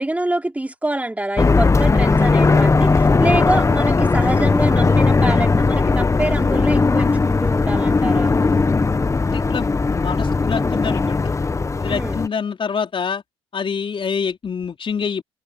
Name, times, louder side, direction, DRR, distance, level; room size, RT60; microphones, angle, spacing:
voice 1, 0.0-8.3 11.9-12.2, right 1 dB, 10° right, 3.5 m, -25 dB
sound 1, 1.4-12.3, left 3 dB, 25° left, 1.1 m, -17 dB
voice 2, 9.2-11.4 11.8-13.2 13.5-15.2, left 6 dB, 45° left, 4.4 m, -26 dB
hypercardioid pair, 60°, 13 cm